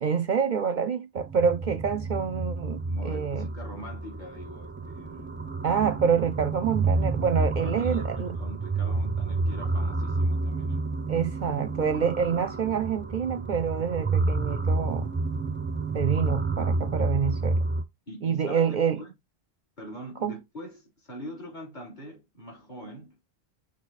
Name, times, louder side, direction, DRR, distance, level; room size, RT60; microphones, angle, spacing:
voice 1, 0.0-3.5 5.6-8.4 11.1-15.1 15.9-17.6 18.2-19.0 20.2-20.3, right 7 dB, 55° right, 0.6 m, -27 dB
sound 1, 1.2-17.8, right 3 dB, 15° right, 0.4 m, -29 dB
voice 2, 2.9-5.4 7.4-10.8 18.1-19.1 19.8-23.2, equal, 45° left, 3.4 m, -43 dB
6.5 x 3.6 x 4.1 m
omnidirectional pair, 1.1 m